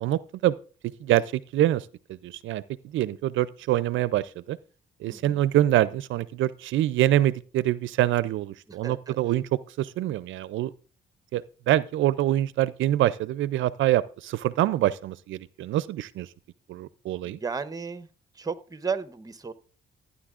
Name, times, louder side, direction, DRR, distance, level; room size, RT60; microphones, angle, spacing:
voice 1, 0.0-0.5 0.8-2.6 2.9-4.6 5.0-10.7 11.3-16.3 16.7-17.4, right 13 dB, 75° right, 0.4 m, -25 dB
voice 2, 5.1-5.4 8.7-9.2 17.2-18.1 18.4-19.5, right 5 dB, 20° right, 0.8 m, -34 dB
15.0 x 9.7 x 2.4 m
cardioid pair, 90°, 20 cm